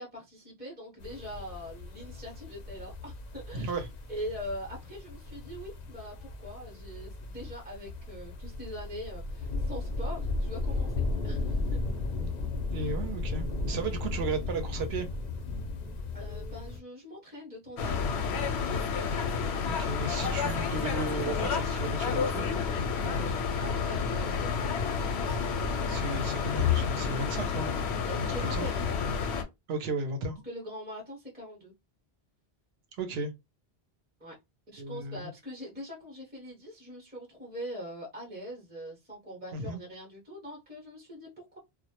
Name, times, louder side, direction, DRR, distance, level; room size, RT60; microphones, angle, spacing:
voice 1, 0.0-3.8 4.1-11.8 12.7-12.9 16.1-18.2 23.0-24.6 28.0-29.2 30.4-31.7 34.2-34.3 34.7-41.6, equal, 10° right, 0.6 m, -42 dB
sound 1, 1.0-16.8, left 3 dB, 55° left, 0.5 m, -35 dB
voice 2, 3.5-3.9 12.7-15.1 19.6-22.4 25.9-27.7 28.4-28.7 29.7-30.4 33.0-33.3 34.8-35.3 39.5-39.8, right 3 dB, 75° right, 0.8 m, -34 dB
sound 2, 17.8-29.4, left 6 dB, 85° left, 0.8 m, -30 dB
2.1 x 2.0 x 2.8 m
omnidirectional pair, 1.1 m